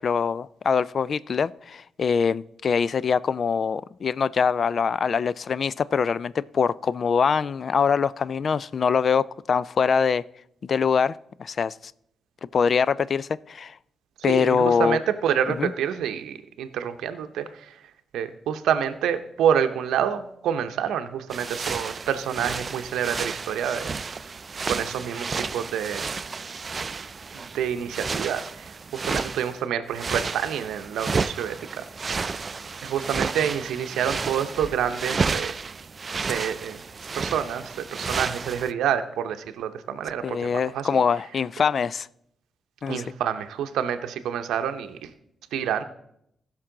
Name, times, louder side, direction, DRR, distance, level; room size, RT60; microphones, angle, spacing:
voice 1, 0.0-10.2 10.6-11.1 11.4-11.9 12.5-13.7 14.2-15.0 15.5-15.7 40.2-42.1 42.8-43.0, left 6 dB, 55° left, 20 dB, 0.3 m, -23 dB
voice 2, 14.3-17.7 18.1-23.9 24.7-26.1 27.3-31.9 32.8-35.5 36.2-36.8 37.2-40.9 42.9-45.1 45.5-45.8, right 9 dB, 80° right, 9 dB, 0.7 m, -28 dB
sound 1, 21.3-29.6 29.9-38.7, right 4 dB, 45° right, 0.4 m, -32 dB
15.5 x 6.0 x 3.8 m, 0.74 s
supercardioid pair, 50°, 0 cm